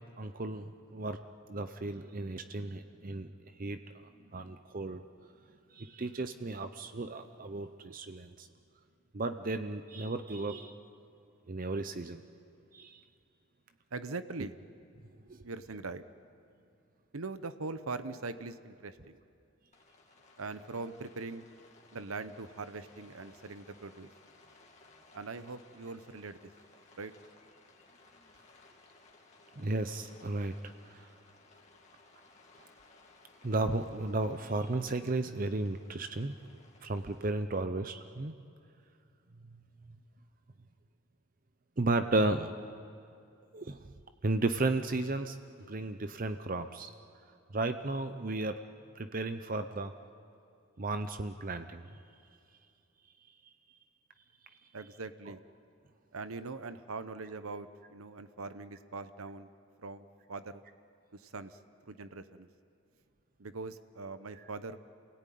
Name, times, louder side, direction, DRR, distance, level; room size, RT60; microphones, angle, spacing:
voice 1, 0.2-1.2 1.5-3.3 3.6-5.0 5.7-8.5 9.1-10.7 11.5-12.2 12.7-13.0 15.3-15.4 29.6-30.5 30.8-31.1 33.4-36.4 36.8-38.3 41.8-42.6 43.5-43.9 44.2-45.4 45.7-46.9 47.5-48.6 49.0-49.9 50.8-51.9, right 2 dB, 40° right, 9 dB, 0.7 m, -34 dB
voice 2, 13.9-14.5 15.4-16.0 17.1-19.2 20.4-21.4 21.9-24.1 25.1-26.5 27.0-27.1 54.7-55.4 56.1-59.5 59.8-60.6 61.1-61.6 61.9-62.5 63.4-64.8, right 3 dB, 85° right, 11 dB, 0.9 m, -42 dB
Rain, 19.7-37.3, left 3 dB, 35° left, 2.4 m, -60 dB
28.5 x 18.0 x 9.3 m, 2.5 s
head